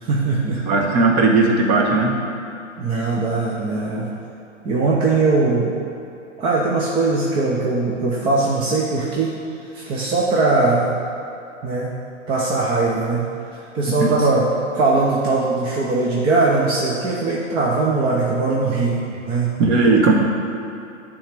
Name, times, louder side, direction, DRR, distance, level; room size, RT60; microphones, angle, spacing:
voice 1, 0.0-0.6 2.8-4.1 4.6-5.7 6.4-9.3 9.7-10.9 11.6-11.9 12.3-13.2 13.5-14.4 14.7-19.5, right 3 dB, 15° right, -5 dB, 0.5 m, -20 dB
voice 2, 0.6-2.2 14.0-14.1 19.6-20.1, right 3 dB, 30° right, 1 dB, 1.2 m, -16 dB
9.9 x 3.6 x 6.5 m, 2.8 s
hypercardioid pair, 130°, 38 cm